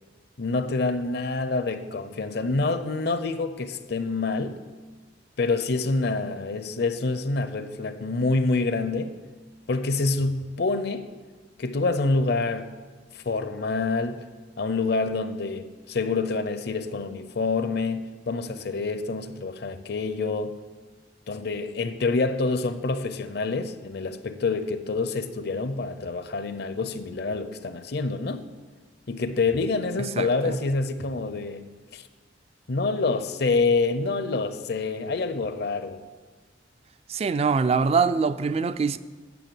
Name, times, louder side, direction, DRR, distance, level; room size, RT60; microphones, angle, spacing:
voice 1, 0.4-4.6 5.4-9.2 9.7-11.1 11.6-12.7 13.1-14.3 14.6-20.6 21.3-28.4 29.1-31.7 31.9-32.1 32.7-36.0, left 3 dB, 60° left, 0.6 m, -27 dB
voice 2, 30.2-30.6 37.1-39.0, right 5 dB, 35° right, 0.3 m, -24 dB
9.3 x 6.4 x 7.7 m
head